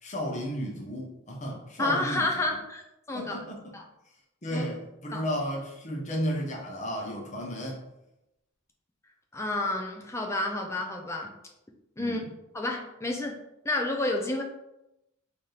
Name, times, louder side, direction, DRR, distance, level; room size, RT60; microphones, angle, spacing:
voice 1, 0.0-2.3 3.1-3.8 4.4-7.8 12.0-12.3, equal, 35° left, -1 dB, 0.8 m, -33 dB
voice 2, 1.8-2.8 3.1-3.4 3.7-3.8 4.5-4.6 5.1-5.2 9.3-11.3 12.0-12.2 12.5-13.4 13.6-14.4, left 2 dB, 15° left, 2 dB, 0.4 m, -30 dB
4.1 x 2.7 x 3.2 m, 0.87 s
head